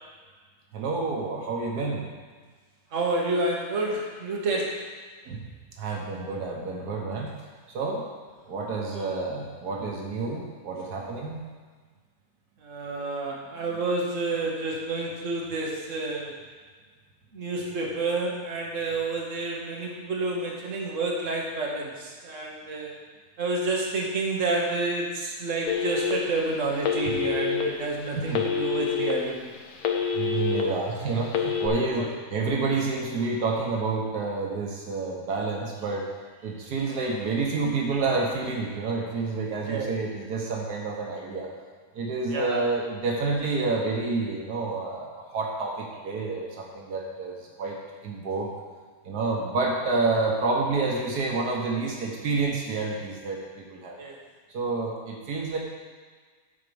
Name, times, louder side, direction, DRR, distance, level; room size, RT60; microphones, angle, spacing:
voice 1, 0.7-2.1 5.2-5.5 5.8-7.3 7.7-8.0 8.5-11.4 27.1-27.2 28.3-28.4 30.1-36.1 36.4-41.5 41.9-48.5 49.0-54.0 54.5-55.6, right 3 dB, 85° right, -1 dB, 1.7 m, -29 dB
voice 2, 2.9-4.8 8.9-9.1 12.6-16.4 17.3-22.9 23.4-29.5 30.5-30.8 31.9-32.1 39.6-39.9 42.3-42.6 54.0-54.2, right 2 dB, 55° right, -1 dB, 1.7 m, -29 dB
Telephone, 25.7-26.4 26.8-27.6 28.3-29.1 29.5-30.6 31.3-31.7, left 6 dB, 75° left, 1.4 m, -26 dB
9.4 x 4.7 x 6.9 m, 1.5 s
omnidirectional pair, 1.6 m